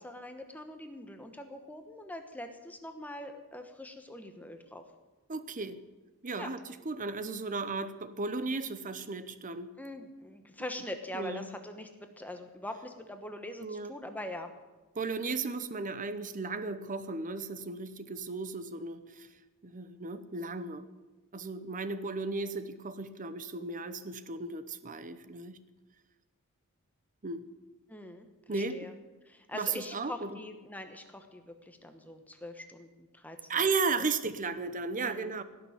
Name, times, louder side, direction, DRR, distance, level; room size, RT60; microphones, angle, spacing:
voice 1, 0.0-4.8 6.4-6.5 9.8-14.5 27.9-28.9 29.3-33.6 34.9-35.4, left 1 dB, 5° left, 6 dB, 1.1 m, -43 dB
voice 2, 5.3-5.8 6.2-9.7 11.1-11.5 13.6-13.9 15.0-19.3 19.6-20.9 21.3-25.6 27.2-27.4 28.5-28.9 29.5-30.4 33.5-35.4, right 4 dB, 35° right, 12 dB, 0.9 m, -35 dB
17.0 x 6.8 x 9.6 m, 1.2 s
head